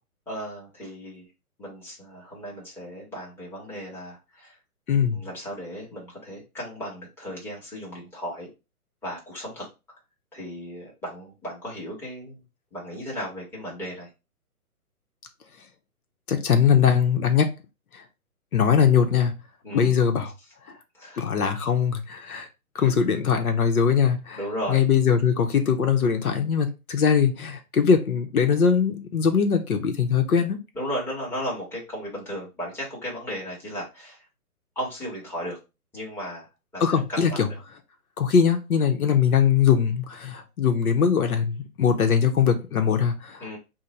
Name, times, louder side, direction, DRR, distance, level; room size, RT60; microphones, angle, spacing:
voice 1, 0.3-1.3 1.6-4.6 5.1-8.5 9.0-9.7 10.3-12.4 12.7-14.1 19.6-20.0 20.9-21.2 21.6-21.7 22.7-22.9 24.4-24.9 30.7-34.2 34.7-35.6 35.9-36.5 36.7-37.5 43.4-43.6, equal, 5° left, 1.2 m, -35 dB
voice 2, 4.9-5.2 16.3-17.5 17.9-18.0 18.5-19.3 19.7-20.3 21.2-22.5 22.7-24.4 24.7-30.6 36.8-37.5 38.2-43.5, left 7 dB, 70° left, 0.9 m, -21 dB
3.7 x 2.2 x 4.2 m
hypercardioid pair, 135°, 44 cm